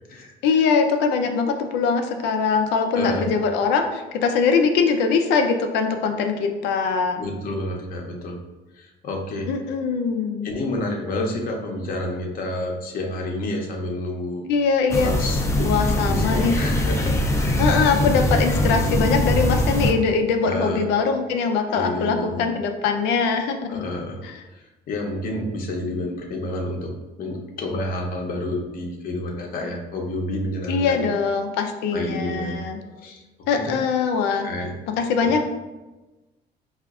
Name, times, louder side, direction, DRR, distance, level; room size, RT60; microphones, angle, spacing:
voice 1, 0.4-7.2 9.5-10.5 14.5-15.1 15.6-16.6 17.6-23.9 24.2-24.3 30.7-32.8 33.5-34.5 35.0-35.4, left 5 dB, 90° left, 5 dB, 0.5 m, -22 dB
voice 2, 2.9-3.3 7.2-8.4 8.8-9.5 10.4-14.5 15.0-17.7 20.4-20.8 21.7-22.5 23.7-24.2 24.5-31.1 31.9-32.5 33.0-33.2 33.5-33.8 34.4-34.7 35.2-35.4, left 1 dB, 60° left, 0 dB, 0.7 m, -29 dB
sound 1, 14.9-19.9, left 1 dB, 15° left, 0.4 m, -22 dB
4.7 x 2.4 x 2.4 m, 1.1 s
cardioid pair, 110°, 17 cm